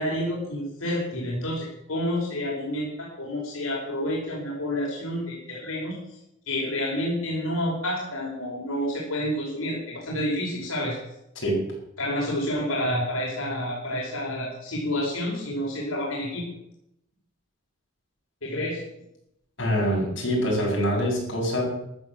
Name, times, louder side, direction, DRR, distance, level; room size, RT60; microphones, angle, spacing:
voice 1, 0.0-6.0 6.5-11.0 12.0-16.4 18.4-18.8, left 1 dB, 85° left, -4 dB, 5.1 m, -29 dB
voice 2, 19.6-21.6, equal, 60° left, -3 dB, 7.8 m, -24 dB
14.0 x 11.5 x 7.6 m, 0.79 s
head